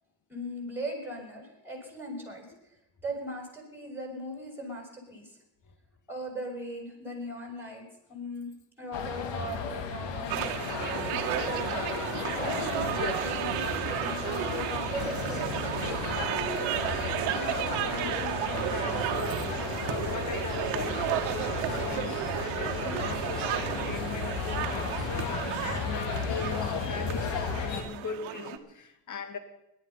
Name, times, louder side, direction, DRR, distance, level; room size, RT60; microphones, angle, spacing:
voice 1, 0.3-2.5 3.0-5.3 6.1-10.4 11.0-16.0, equal, 5° right, 1 dB, 6.9 m, -39 dB
sound 1, 8.9-27.8, left 6 dB, 70° left, 2.0 m, -34 dB
sound 2, 10.3-28.6, right 13 dB, 85° right, 1.3 m, -33 dB
voice 2, 17.3-29.4, left 4 dB, 40° left, 9 dB, 2.0 m, -40 dB
18.0 x 11.5 x 5.7 m, 0.85 s
supercardioid pair, 75°, 45 cm